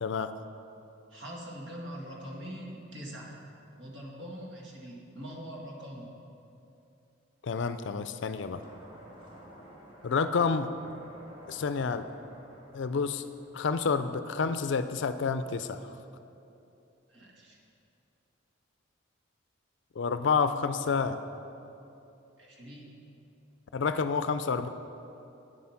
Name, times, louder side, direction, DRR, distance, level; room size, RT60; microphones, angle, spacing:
voice 1, 0.0-0.3 7.4-8.6 10.0-10.7 11.5-12.1 12.7-13.2 13.5-15.8 20.0-21.2 23.7-24.7, left 5 dB, 65° left, 11 dB, 0.4 m, -29 dB
voice 2, 1.1-3.4 3.8-6.1 17.1-17.6 22.4-22.9, equal, 65° right, -2 dB, 1.8 m, -43 dB
sound 1, 8.5-14.5, right 1 dB, 25° right, 1.7 m, -52 dB
9.2 x 7.5 x 5.9 m, 2.8 s
head